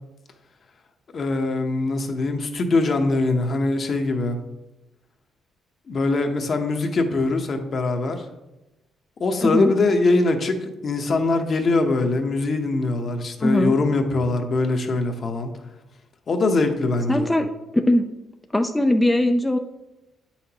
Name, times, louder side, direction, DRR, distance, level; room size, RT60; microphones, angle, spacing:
voice 1, 1.1-4.4 5.9-8.3 9.2-15.5 16.3-17.3, left 3 dB, 50° left, 5 dB, 0.9 m, -22 dB
voice 2, 9.4-9.7 13.4-13.7 17.1-17.5 17.7-18.1 18.5-19.6, left 1 dB, 10° left, 5 dB, 0.4 m, -20 dB
9.0 x 5.8 x 2.9 m, 1.0 s
cardioid pair, 90°, 0 cm